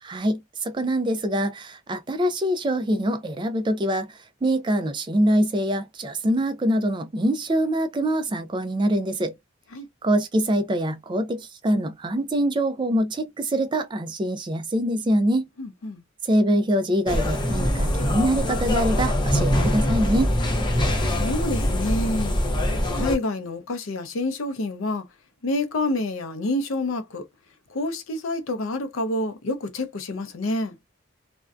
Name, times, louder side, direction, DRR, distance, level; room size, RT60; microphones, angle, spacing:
voice 1, 0.0-4.1 4.4-9.3 10.0-15.5 16.2-20.3, right 1 dB, 25° right, 0.3 m, -24 dB
voice 2, 15.6-16.0 21.1-22.4 22.9-25.1 25.4-27.2 27.7-30.8, left 1 dB, 85° left, 0.5 m, -28 dB
sound 1, 17.1-23.2, left 1 dB, 25° left, 0.6 m, -23 dB
2.5 x 2.1 x 2.3 m
head